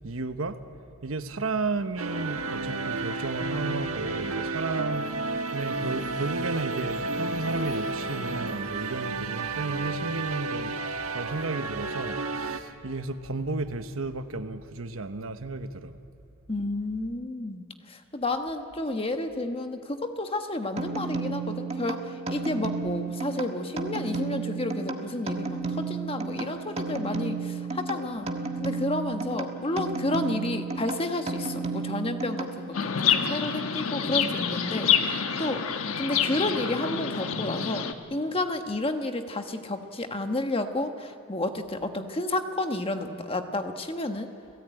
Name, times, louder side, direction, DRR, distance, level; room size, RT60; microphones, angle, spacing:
voice 1, 0.0-0.6 1.0-5.2 5.5-10.8 11.1-15.9, right 3 dB, 70° right, 1.1 m, -33 dB
sound 1, 2.0-12.6, right 3 dB, 85° right, 1.5 m, -32 dB
voice 2, 16.5-22.0 22.3-28.3 28.6-35.6 36.0-44.3, left 2 dB, 25° left, 1.3 m, -31 dB
sound 2, 20.8-32.9, right 3 dB, 30° right, 1.6 m, -33 dB
Chirp tweet, 32.7-37.9, left 7 dB, 80° left, 1.3 m, -27 dB
30.0 x 16.5 x 9.1 m
head